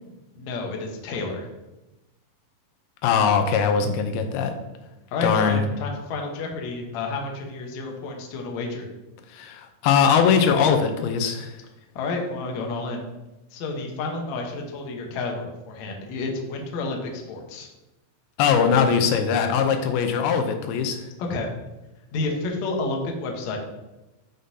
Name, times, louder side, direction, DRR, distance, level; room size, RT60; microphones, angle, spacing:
voice 1, 0.4-1.5 5.1-8.9 12.0-13.1 13.5-17.7 18.7-18.8 21.2-21.5 22.1-23.6, left 3 dB, 65° left, 1 dB, 2.0 m, -30 dB
voice 2, 3.0-4.5 5.2-5.6 9.3-11.5 18.4-21.1, left 6 dB, 85° left, 6 dB, 2.6 m, -21 dB
11.0 x 5.3 x 2.8 m, 1.0 s
omnidirectional pair, 4.3 m